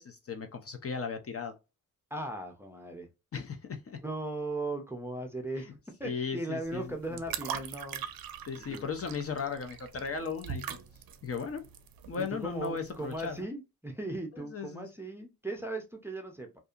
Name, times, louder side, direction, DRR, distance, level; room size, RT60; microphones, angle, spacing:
voice 1, 0.0-1.5 3.3-4.0 6.0-7.2 8.5-10.8 11.2-11.6 12.1-13.5 14.3-14.9, left 5 dB, 40° left, 0.5 m, -36 dB
voice 2, 2.1-3.1 4.0-5.7 6.0-8.0 8.7-8.9 12.3-16.5, right 2 dB, 5° right, 0.5 m, -38 dB
sound 1, 6.6-13.4, right 8 dB, 80° right, 0.5 m, -42 dB
2.6 x 2.4 x 2.3 m
wide cardioid pair, 135°, 35 cm